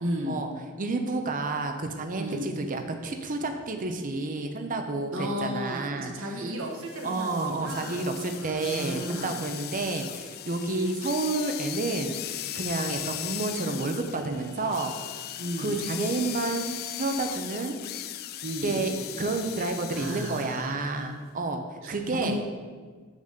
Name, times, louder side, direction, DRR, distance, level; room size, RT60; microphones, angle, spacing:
voice 1, 0.0-0.3 2.2-2.5 5.1-8.0 8.3-9.4 15.4-15.7 18.4-18.7 19.9-21.2 21.8-21.9 22.2-22.4, equal, 65° right, -1 dB, 1.2 m, -34 dB
voice 2, 0.8-6.3 7.0-12.2 12.5-14.9 15.6-17.8 18.6-22.4, right 3 dB, 40° right, 5 dB, 0.7 m, -30 dB
sound 1, 6.7-20.7, left 12 dB, 45° left, 0.3 m, -38 dB
7.0 x 4.1 x 6.6 m, 1.5 s
head